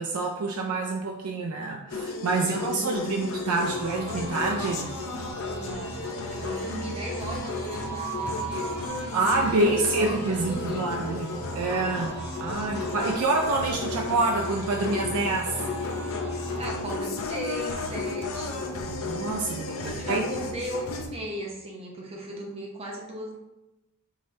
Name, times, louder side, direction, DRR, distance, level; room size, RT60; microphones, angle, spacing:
voice 1, 0.0-4.9 9.1-15.6 19.0-20.2, right 3 dB, 80° right, 1 dB, 0.4 m, -27 dB
sound 1, 1.9-21.1, left 3 dB, 65° left, 0.6 m, -34 dB
voice 2, 2.6-3.2 5.5-8.7 9.3-10.9 16.6-18.6 19.8-23.4, equal, 25° right, -2 dB, 0.8 m, -37 dB
sound 2, 3.6-16.7, right 2 dB, 45° right, 1.1 m, -38 dB
4.8 x 3.1 x 2.7 m, 0.95 s
head